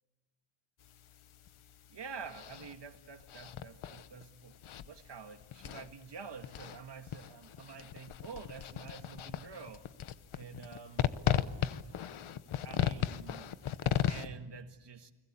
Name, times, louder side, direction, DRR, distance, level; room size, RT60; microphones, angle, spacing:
sound 1, 0.8-14.3, left 10 dB, 80° left, 1.0 m, -37 dB
voice 1, 1.9-9.9 10.3-11.1 12.6-13.5 13.8-15.1, right 5 dB, 60° right, 7 dB, 1.9 m, -48 dB
30.0 x 20.5 x 8.6 m, 1.2 s
wide cardioid pair, 105°, 48 cm